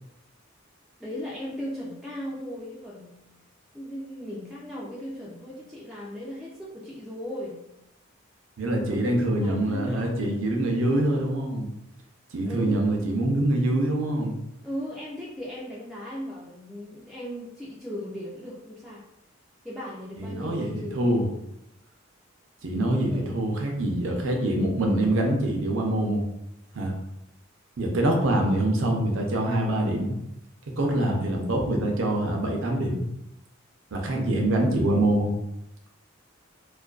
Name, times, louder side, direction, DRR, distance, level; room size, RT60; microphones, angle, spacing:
voice 1, 1.0-3.2 3.7-7.6 8.8-10.4 12.4-13.0 14.6-19.0 19.6-21.5 23.0-23.4, equal, ahead, -7 dB, 0.3 m, -37 dB
voice 2, 8.6-11.7 12.3-14.4 20.2-21.3 22.6-26.2 26.7-26.9 27.8-30.1 30.8-33.0 33.9-35.3, right 1 dB, 70° right, 1 dB, 0.5 m, -25 dB
2.4 x 2.2 x 2.3 m, 0.85 s
head